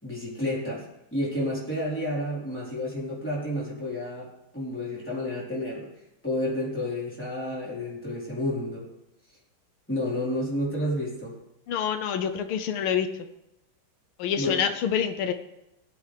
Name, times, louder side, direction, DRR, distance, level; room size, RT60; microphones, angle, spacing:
voice 1, 0.0-0.9 1.1-4.3 4.5-5.9 6.2-8.9 9.9-11.4 14.3-14.7, left 1 dB, 5° left, -7 dB, 3.8 m, -30 dB
voice 2, 11.7-13.1 14.2-15.3, left 8 dB, 80° left, 9 dB, 1.5 m, -26 dB
19.5 x 8.5 x 3.3 m, 0.88 s
omnidirectional pair, 2.3 m